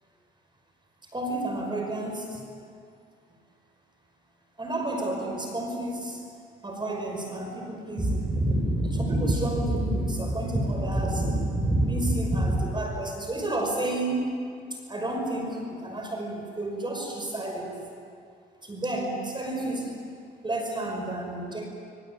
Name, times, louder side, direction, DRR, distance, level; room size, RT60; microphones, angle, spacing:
voice 1, 1.1-2.4 4.6-6.2 6.6-14.4 14.7-17.8 18.6-20.0 20.4-21.7, right 1 dB, 25° right, 2 dB, 5.9 m, -29 dB
26.0 x 23.0 x 9.0 m, 2.3 s
cardioid pair, 90°, 20 cm